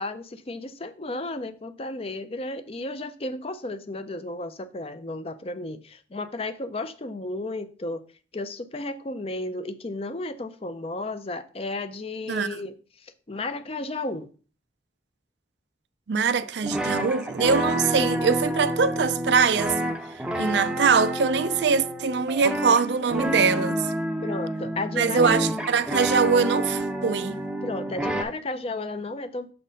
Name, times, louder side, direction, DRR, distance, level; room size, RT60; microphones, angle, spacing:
voice 1, 0.0-8.0 8.3-12.7 13.3-14.3 24.2-25.3 27.6-29.5, left 2 dB, 35° left, 0.6 m, -33 dB
voice 2, 12.3-12.6 16.1-19.8 20.3-23.9 25.0-27.4, right 5 dB, 75° right, 0.5 m, -23 dB
sound 1, 16.6-28.2, right 1 dB, 5° right, 0.6 m, -29 dB
6.4 x 4.3 x 5.0 m
head